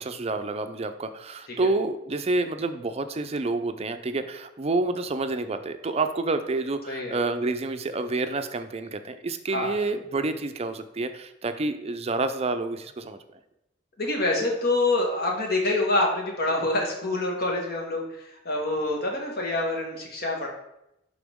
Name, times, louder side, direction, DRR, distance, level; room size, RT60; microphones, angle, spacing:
voice 1, 0.0-13.2, right 3 dB, 35° right, 9 dB, 0.5 m, -28 dB
voice 2, 6.9-7.2 9.5-9.8 14.0-20.5, left 2 dB, 55° left, 0 dB, 1.7 m, -26 dB
11.0 x 3.9 x 3.6 m, 0.85 s
head